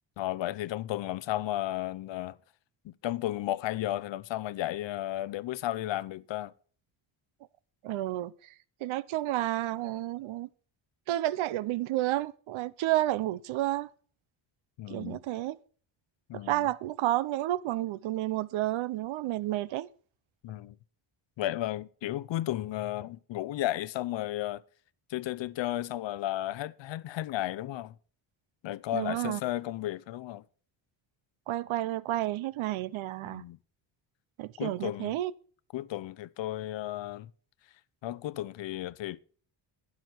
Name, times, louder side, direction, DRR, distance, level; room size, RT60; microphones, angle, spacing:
voice 1, 0.2-2.4 2.8-6.5 14.8-15.2 16.3-16.7 20.4-20.8 21.4-24.6 25.1-27.9 28.6-30.4 33.2-33.6 34.6-35.2 35.7-37.3 38.0-39.2, left 14 dB, 70° left, 0.8 m, -34 dB
voice 2, 7.8-8.5 8.8-10.5 11.1-13.9 14.9-15.6 16.3-19.9 28.9-29.4 31.5-33.4 34.4-35.3, right 15 dB, 80° right, 0.8 m, -31 dB
12.0 x 9.7 x 4.5 m
cardioid pair, 125°, 47 cm